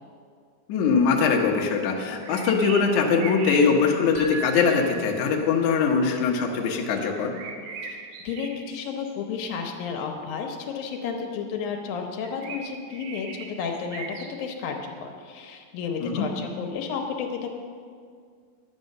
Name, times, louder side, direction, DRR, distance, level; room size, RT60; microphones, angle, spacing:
voice 1, 0.7-7.3 16.0-16.3, left 5 dB, 65° left, 0 dB, 2.4 m, -22 dB
sound 1, 2.0-4.9 7.1-9.1 12.2-14.3, right 5 dB, 75° right, 2.7 m, -39 dB
sound 2, 4.1-5.7, right 3 dB, 20° left, 2.8 m, -38 dB
voice 2, 7.8-14.0 14.3-17.5, left 6 dB, 80° left, 2 dB, 2.8 m, -32 dB
11.0 x 9.1 x 6.6 m, 2.1 s
omnidirectional pair, 4.1 m